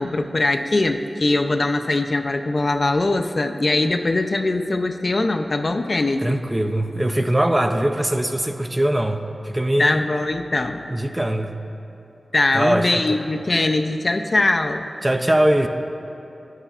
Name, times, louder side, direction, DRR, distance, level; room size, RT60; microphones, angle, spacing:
voice 1, 0.0-6.2 9.8-10.8 12.3-14.8, left 2 dB, 45° left, 6 dB, 0.4 m, -21 dB
voice 2, 6.2-10.0 10.9-11.5 12.5-12.9 15.0-15.7, right 1 dB, 15° right, 6 dB, 0.4 m, -21 dB
11.0 x 9.9 x 2.4 m, 2.8 s
wide cardioid pair, 80°, 0 cm